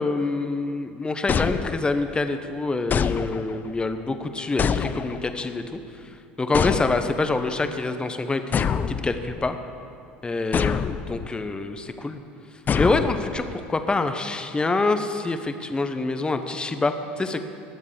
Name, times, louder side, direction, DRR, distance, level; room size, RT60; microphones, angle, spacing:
voice 1, 0.0-5.6 6.4-8.6 8.9-9.5 10.2-12.2 12.8-17.4, left 3 dB, 15° left, 8 dB, 1.1 m, -26 dB
sound 1, 1.3-2.2 2.9-3.7 4.6-5.4 6.5-7.3 8.5-9.5 10.5-11.3 12.7-13.6, left 7 dB, 30° left, 0.5 m, -26 dB
19.0 x 7.3 x 6.9 m, 2.5 s
hypercardioid pair, 75°, 6 cm